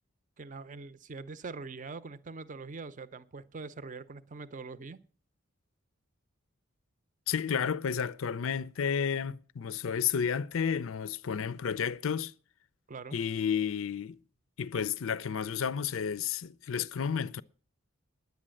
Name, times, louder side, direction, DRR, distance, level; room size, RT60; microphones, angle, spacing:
voice 1, 0.4-5.0 12.9-13.2, right 4 dB, 40° right, 0.6 m, -43 dB
voice 2, 7.3-12.3 13.1-14.2 14.6-17.4, left 7 dB, 75° left, 0.5 m, -31 dB
10.5 x 8.6 x 7.6 m
head